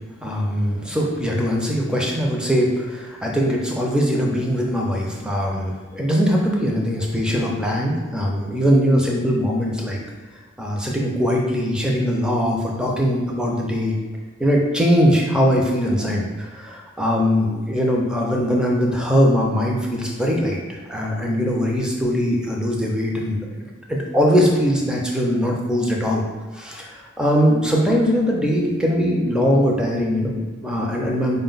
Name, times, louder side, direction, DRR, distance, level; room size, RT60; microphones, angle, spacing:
voice 1, 0.2-10.0 10.6-14.0 14.4-23.5 23.9-26.2 26.5-31.4, equal, 5° right, -1 dB, 0.5 m, -21 dB
4.2 x 2.2 x 3.9 m, 1.4 s
head